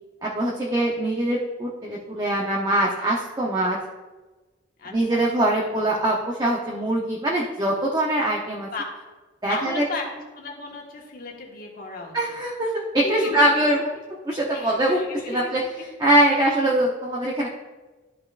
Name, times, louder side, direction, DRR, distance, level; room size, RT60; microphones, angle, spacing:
voice 1, 0.2-3.8 4.9-8.7 9.4-9.8 12.1-13.8 14.3-15.0 15.3-15.6 16.0-17.5, right 1 dB, 20° right, -3 dB, 0.8 m, -22 dB
voice 2, 4.8-5.5 8.7-8.8 9.5-12.1 13.0-13.8 14.5-15.9 16.3-16.5, left 2 dB, 50° left, -1 dB, 1.5 m, -34 dB
12.5 x 5.5 x 2.5 m, 1.2 s
head